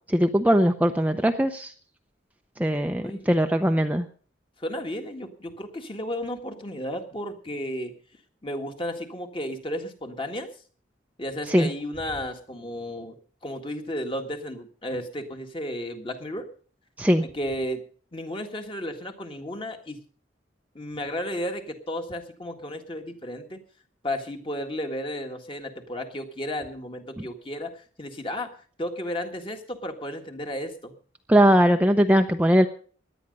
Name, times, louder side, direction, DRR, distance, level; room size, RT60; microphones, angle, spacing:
voice 1, 0.1-1.7 2.6-4.0 11.5-11.7 17.0-17.2 31.3-32.7, equal, 10° right, 5 dB, 0.6 m, -20 dB
voice 2, 3.0-3.4 4.6-7.9 8.4-10.5 11.2-13.2 13.4-16.5 17.2-17.8 18.1-20.0 20.8-23.6 24.0-30.9, equal, 25° left, 5 dB, 1.8 m, -33 dB
17.5 x 11.0 x 5.3 m, 0.43 s
head